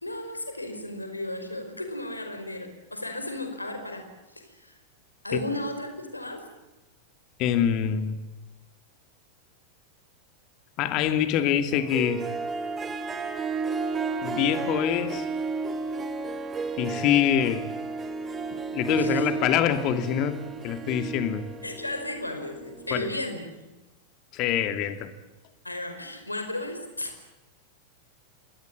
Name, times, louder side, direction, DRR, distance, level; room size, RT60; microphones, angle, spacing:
voice 1, 0.0-4.8 5.2-6.4 19.0-19.3 21.6-23.7 25.6-27.2, left 1 dB, 85° left, 6 dB, 5.0 m, -34 dB
voice 2, 7.4-8.2 10.8-12.3 14.2-15.2 16.8-17.7 18.7-21.4 22.9-23.1 24.3-25.1, left 9 dB, 40° left, 9 dB, 2.6 m, -25 dB
Harp, 11.7-22.9, right 4 dB, 20° right, 2.4 m, -32 dB
27.0 x 20.5 x 8.8 m, 1.1 s
figure-of-eight pair, 90°, 0 cm